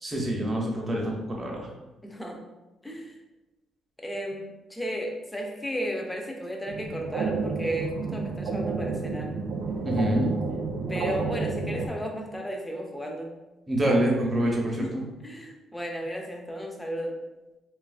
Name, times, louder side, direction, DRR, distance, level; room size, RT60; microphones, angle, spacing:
voice 1, 0.0-1.7 9.8-10.3 13.7-15.0, right 1 dB, 25° right, -1 dB, 0.8 m, -26 dB
voice 2, 2.0-2.4 2.8-3.1 4.0-9.3 10.9-13.3 14.8-15.0 15.2-17.1, equal, 10° left, 1 dB, 0.6 m, -34 dB
sound 1, 6.7-11.9, right 4 dB, 80° right, 0.3 m, -30 dB
3.3 x 2.3 x 2.3 m, 1.1 s
cardioid pair, 90°, 0 cm